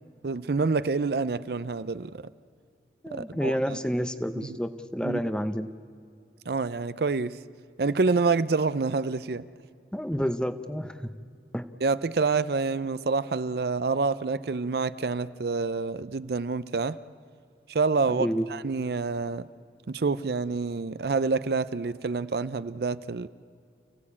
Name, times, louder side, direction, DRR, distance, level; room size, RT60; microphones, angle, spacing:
voice 1, 0.2-2.2 3.1-3.8 4.4-4.6 5.0-5.2 6.5-7.4 7.8-9.5 11.8-17.0 17.7-19.5 19.9-23.3, right 4 dB, 60° right, 0.5 m, -27 dB
voice 2, 3.0-5.7 9.9-11.1 11.5-11.6 18.1-18.5, equal, 5° left, 0.7 m, -29 dB
29.5 x 16.5 x 8.5 m
head